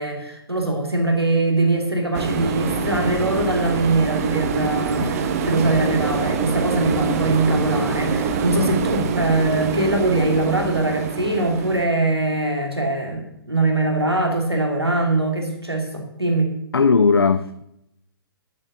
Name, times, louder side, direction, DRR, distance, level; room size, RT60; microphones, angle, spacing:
voice 1, 0.0-16.5, right 2 dB, 90° right, 2.8 m, -22 dB
sound 1, 2.1-11.9, right 5 dB, 40° right, 1.2 m, -25 dB
sound 2, 5.5-9.1, equal, 5° right, 1.4 m, -38 dB
voice 2, 16.7-17.6, left 4 dB, 70° left, 0.7 m, -18 dB
11.0 x 9.2 x 6.8 m
figure-of-eight pair, 125°, 13 cm